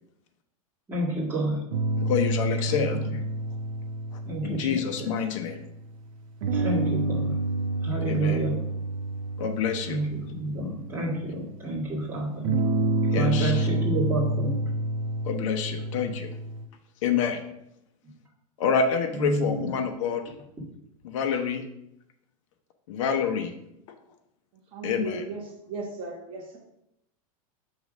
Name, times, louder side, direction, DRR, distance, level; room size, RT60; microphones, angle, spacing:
voice 1, 0.9-1.6 2.6-3.0 4.2-5.1 6.5-7.4 7.8-8.6 9.8-12.6 13.1-14.6 19.1-19.7, right 1 dB, 10° right, -6 dB, 1.8 m, -29 dB
sound 1, 1.7-5.6 6.4-11.5 12.4-16.6, right 2 dB, 70° right, 0.8 m, -29 dB
voice 2, 2.0-3.0 4.1-5.6 8.1-8.4 9.4-10.0 13.1-13.7 15.2-16.3 17.0-17.4 18.6-20.2 21.0-21.6 22.9-23.5 24.8-25.2, left 6 dB, 60° left, 5 dB, 0.8 m, -27 dB
voice 3, 24.7-26.6, right 3 dB, 30° right, -1 dB, 1.1 m, -36 dB
6.8 x 3.2 x 4.9 m, 0.81 s
supercardioid pair, 145°, 18 cm